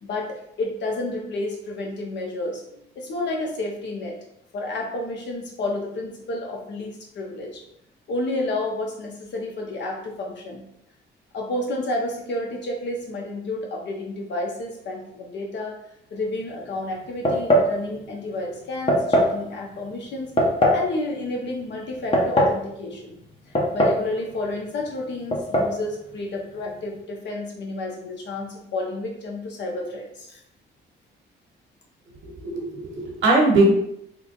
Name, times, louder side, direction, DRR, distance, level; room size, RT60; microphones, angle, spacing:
voice 1, 0.0-4.2 4.5-7.6 8.1-10.6 11.3-15.8 16.1-20.3 20.7-23.2 23.7-30.4, left 2 dB, 65° left, 0 dB, 1.0 m, -30 dB
sound 1, 17.3-17.7 18.9-19.4 20.4-20.9 21.9-22.6 23.6-24.1 24.3-24.4 25.3-25.7, equal, 30° left, 0.8 m, -19 dB
voice 2, 32.2-33.7, right 2 dB, 75° right, -1 dB, 1.2 m, -20 dB
3.4 x 2.2 x 3.9 m, 0.74 s
cardioid pair, 90°, 20 cm